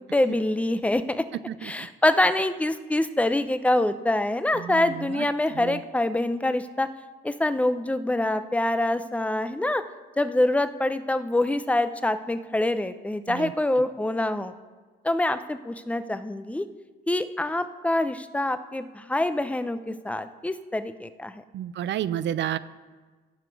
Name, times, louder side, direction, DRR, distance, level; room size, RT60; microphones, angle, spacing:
voice 1, 0.1-1.2 1.6-6.9 7.2-9.8 10.2-14.5 15.0-16.7 17.1-21.4, left 1 dB, 5° left, 12 dB, 0.6 m, -25 dB
voice 2, 21.5-22.6, right 11 dB, 65° right, 16 dB, 0.5 m, -29 dB
17.0 x 5.9 x 4.7 m, 1.4 s
cardioid pair, 90°, 20 cm